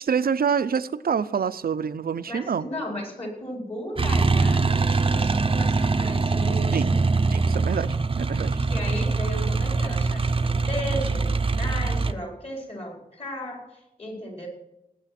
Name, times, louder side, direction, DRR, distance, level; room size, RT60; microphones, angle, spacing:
voice 1, 0.0-2.7 6.7-6.9 7.3-8.6, right 7 dB, 80° right, 15 dB, 0.6 m, -26 dB
voice 2, 2.3-6.9 8.6-14.5, left 1 dB, 40° left, 0 dB, 4.8 m, -35 dB
sound 1, 4.0-12.1, right 4 dB, 35° right, 0.6 m, -23 dB
19.0 x 9.0 x 5.9 m, 0.90 s
wide cardioid pair, 105°, 15 cm